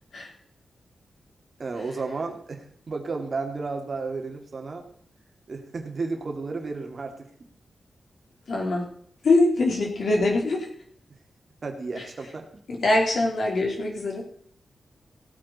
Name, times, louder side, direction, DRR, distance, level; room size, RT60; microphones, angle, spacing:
voice 1, 1.6-4.9 5.5-7.3 11.6-12.5, right 3 dB, 45° right, 4 dB, 2.1 m, -32 dB
voice 2, 8.5-8.9 9.2-10.7 12.7-14.2, left 2 dB, 70° left, 0 dB, 3.6 m, -23 dB
16.5 x 8.9 x 4.2 m, 0.62 s
wide cardioid pair, 120°, 0 cm